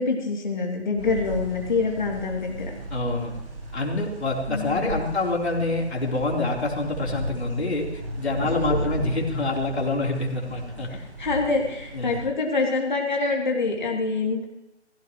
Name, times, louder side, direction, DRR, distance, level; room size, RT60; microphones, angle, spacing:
voice 1, 0.0-2.7 4.5-5.0 10.9-14.4, left 3 dB, 40° left, 0 dB, 2.9 m, -26 dB
sound 1, 1.0-12.2, right 1 dB, 60° right, 6.4 m, -35 dB
voice 2, 2.9-3.3 3.7-7.9 8.2-10.9 11.9-12.1, left 2 dB, 65° left, -2 dB, 3.9 m, -26 dB
16.5 x 16.0 x 3.1 m, 0.92 s
figure-of-eight pair, 170°, 35 cm